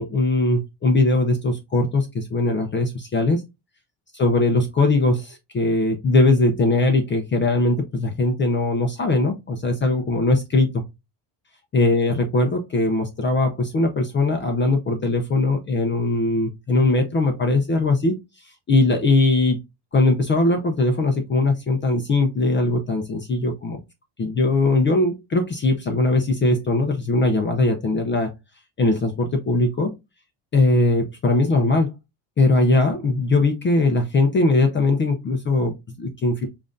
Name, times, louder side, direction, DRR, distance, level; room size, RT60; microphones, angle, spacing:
voice 1, 0.0-3.4 4.1-10.8 11.7-19.6 19.9-23.8 24.2-28.3 28.8-29.9 30.5-32.0 32.4-36.5, left 2 dB, 25° left, 4 dB, 0.5 m, -20 dB
7.0 x 2.5 x 2.5 m, 0.23 s
cardioid pair, 160°, 45 cm